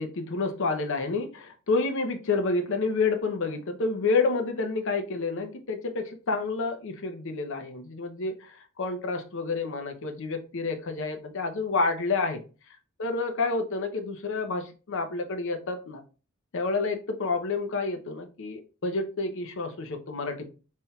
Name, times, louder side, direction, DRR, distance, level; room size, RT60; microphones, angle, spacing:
voice 1, 0.0-8.5 8.8-12.4 13.0-16.0 16.5-20.4, left 3 dB, 65° left, 6 dB, 0.7 m, -29 dB
4.2 x 3.5 x 2.3 m, 0.34 s
head